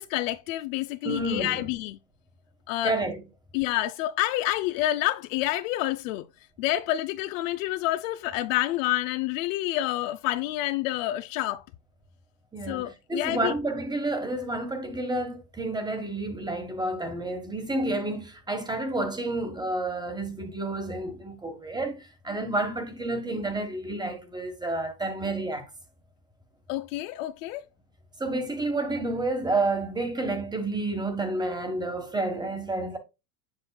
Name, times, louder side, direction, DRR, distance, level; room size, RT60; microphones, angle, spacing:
voice 1, 0.0-2.0 2.7-2.9 3.5-6.3 6.6-11.6 12.7-13.5 26.7-27.6, left 15 dB, 55° left, 0.6 m, -28 dB
voice 2, 1.0-1.7 2.8-3.2 12.5-25.7 28.2-33.0, right 2 dB, 10° right, 1.3 m, -30 dB
7.5 x 6.2 x 2.2 m
supercardioid pair, 125°, 47 cm